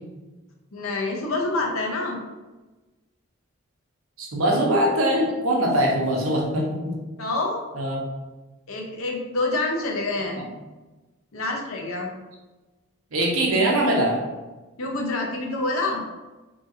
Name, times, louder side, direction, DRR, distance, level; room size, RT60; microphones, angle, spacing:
voice 1, 0.7-2.2 7.2-7.6 8.7-10.4 11.3-12.1 14.8-16.0, left 2 dB, 85° left, 1 dB, 0.6 m, -27 dB
voice 2, 4.2-7.0 7.7-8.0 13.1-14.2, right 1 dB, 85° right, -1 dB, 0.7 m, -22 dB
2.8 x 2.4 x 2.7 m, 1.2 s
head